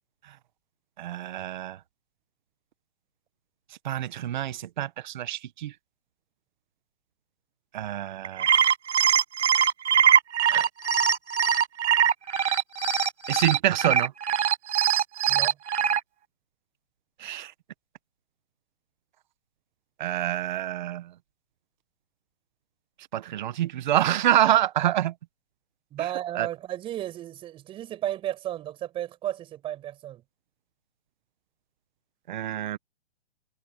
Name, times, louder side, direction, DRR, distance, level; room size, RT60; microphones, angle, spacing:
voice 1, 1.0-1.8 3.8-5.7 7.7-8.5 10.5-10.7 13.3-14.1 17.2-17.5 20.0-21.1 23.1-25.1 26.3-26.5 32.3-32.8, right 12 dB, 40° right, 0.9 m, -26 dB
sound 1, 8.2-16.0, right 8 dB, 75° right, 5.8 m, -22 dB
voice 2, 25.9-30.2, right 12 dB, 15° right, 7.0 m, -33 dB
hypercardioid pair, 170°, 35 cm